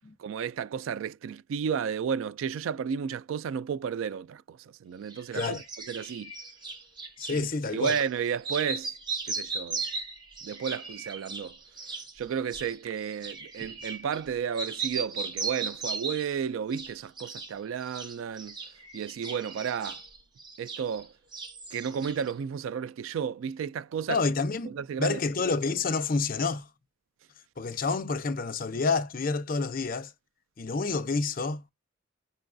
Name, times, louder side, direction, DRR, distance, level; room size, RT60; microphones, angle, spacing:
voice 1, 0.2-6.3 7.3-7.5 7.7-8.9 9.3-9.8 10.4-11.6 12.1-18.6 18.9-20.0 20.6-21.1 21.7-24.2 24.7-25.2, right 7 dB, 80° right, 0.3 m, -32 dB
sound 1, 5.1-7.4 7.8-8.1 8.4-14.3 14.5-16.4 16.7-17.5 17.8-21.1 21.3-22.3, right 4 dB, 20° right, 0.9 m, -37 dB
voice 2, 7.2-7.9 24.1-24.7 25.0-26.7 27.6-30.1 30.6-31.7, left 4 dB, 45° left, 0.5 m, -28 dB
5.3 x 2.3 x 2.5 m
head